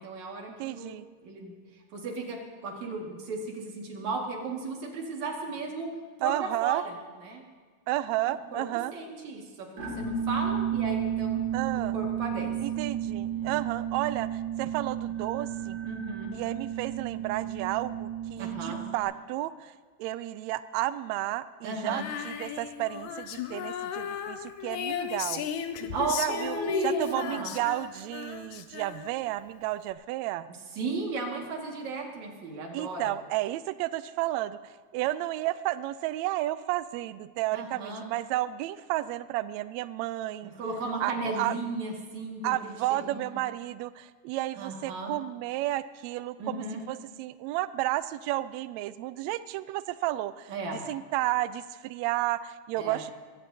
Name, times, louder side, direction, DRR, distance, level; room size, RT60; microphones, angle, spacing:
voice 1, 0.0-0.9 1.2-1.5 1.9-5.9 6.2-7.4 8.2-11.4 11.8-12.5 13.3-13.6 15.8-16.3 18.4-18.8 21.6-22.1 25.8-27.5 30.7-33.1 37.5-38.0 40.4-43.3 44.6-45.1 46.4-46.8 50.5-50.8 52.8-53.0, right 2 dB, 65° right, 0 dB, 3.3 m, -35 dB
voice 2, 0.6-1.1 6.2-6.8 7.9-8.9 11.5-11.9 12.6-15.8 16.3-19.7 20.0-25.5 26.2-26.6 26.8-30.5 32.7-40.5 41.0-41.5 42.4-50.5 50.9-53.1, right 15 dB, 85° right, 14 dB, 1.6 m, -32 dB
sound 1, 9.8-19.0, right 9 dB, 30° right, 2.8 m, -32 dB
Female singing, 21.9-29.3, left 8 dB, 75° left, 2.0 m, -36 dB
21.5 x 16.5 x 2.8 m, 1.5 s
omnidirectional pair, 3.7 m